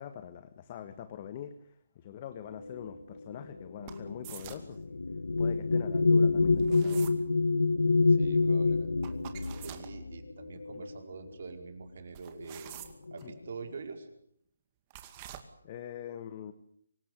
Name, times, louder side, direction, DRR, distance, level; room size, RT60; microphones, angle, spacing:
voice 1, 0.0-5.0 5.4-7.1 10.7-10.8 13.2-13.3 15.6-16.5, left 9 dB, 30° left, 11 dB, 1.5 m, -44 dB
sound 1, 2.6-11.5 12.4-12.6 12.9-13.5, left 3 dB, 85° left, 1.9 m, -28 dB
sound 2, 3.9-4.7 6.6-7.2 9.0-9.9 12.1-13.2 14.9-15.4, right 12 dB, 25° right, 2.3 m, -46 dB
voice 2, 8.1-8.9 9.6-12.7 13.1-14.1, right 5 dB, 55° right, 5 dB, 4.9 m, -45 dB
25.0 x 16.0 x 9.6 m, 0.69 s
hypercardioid pair, 155°, 0 cm